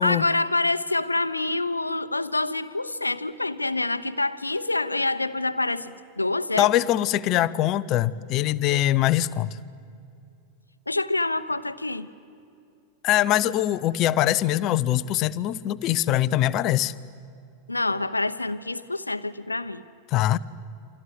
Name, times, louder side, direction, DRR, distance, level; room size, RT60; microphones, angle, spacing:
voice 1, 0.0-6.7 10.9-12.1 17.7-19.8, left 2 dB, 85° left, 1.0 m, -26 dB
voice 2, 6.6-9.6 13.0-16.9 20.1-20.4, left 13 dB, 40° left, 0.8 m, -23 dB
28.5 x 26.5 x 7.7 m
figure-of-eight pair, 90°, 0 cm